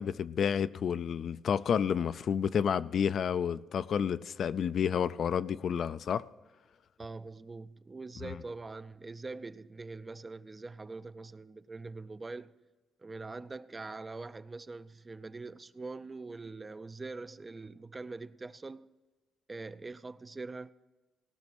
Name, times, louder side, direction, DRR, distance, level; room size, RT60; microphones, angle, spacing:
voice 1, 0.0-6.2 8.2-8.4, left 7 dB, 55° left, 0.3 m, -30 dB
voice 2, 7.0-12.5 13.0-18.9 19.5-20.7, right 3 dB, 25° right, 0.4 m, -43 dB
18.0 x 6.2 x 6.1 m
cardioid pair, 110°, 0 cm